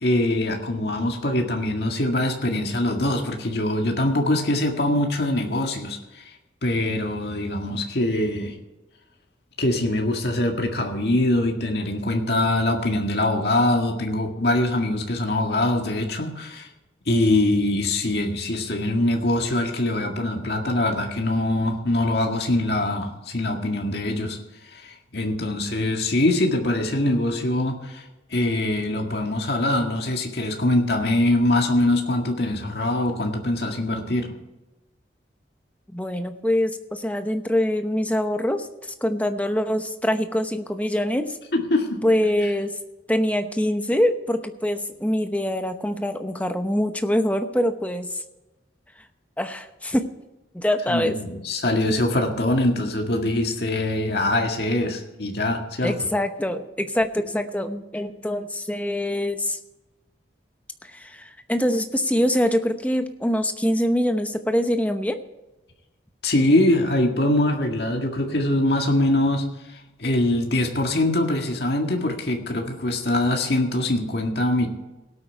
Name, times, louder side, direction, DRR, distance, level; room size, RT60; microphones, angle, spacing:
voice 1, 0.0-6.2 6.6-8.5 9.6-16.7 17.1-24.4 24.7-28.0 28.3-34.3 41.5-42.0 50.9-55.9 66.2-69.5 69.7-74.7, left 1 dB, 60° left, 2 dB, 1.9 m, -23 dB
voice 2, 35.9-41.4 42.0-42.7 43.1-48.2 49.4-50.0 50.5-51.2 55.8-59.6 60.9-65.2, left 1 dB, 10° left, 7 dB, 0.9 m, -24 dB
18.0 x 8.6 x 4.6 m, 1.0 s
head